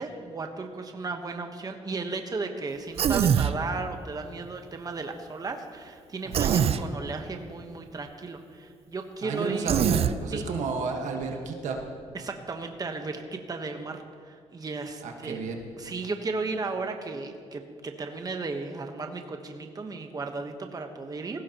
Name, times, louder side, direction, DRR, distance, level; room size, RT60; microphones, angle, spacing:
voice 1, 0.0-9.7 10.3-10.5 12.1-15.4 15.8-21.4, right 3 dB, 30° right, 5 dB, 1.1 m, -35 dB
Human voice, 3.0-3.6 6.3-6.8 9.7-10.1, right 8 dB, 55° right, 0.5 m, -23 dB
voice 2, 6.2-6.6 9.2-11.8 15.0-15.6, right 5 dB, 85° right, 2 dB, 1.5 m, -32 dB
19.0 x 15.5 x 3.0 m, 2.2 s
cardioid pair, 95°, 12 cm